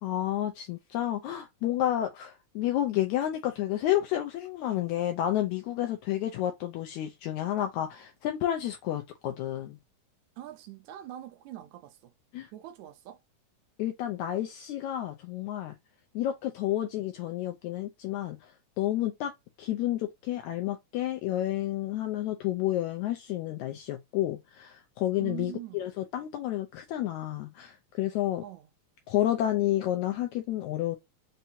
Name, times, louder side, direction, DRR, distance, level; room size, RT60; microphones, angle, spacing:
voice 1, 0.0-9.8 12.3-12.5 13.8-15.8 16.1-19.3 19.6-28.4 29.1-31.0, left 13 dB, 80° left, 1.8 m, -30 dB
voice 2, 10.4-12.1 12.5-13.2 25.2-25.9 28.4-28.7, right 13 dB, 75° right, 1.8 m, -43 dB
5.6 x 2.6 x 2.7 m
omnidirectional pair, 3.7 m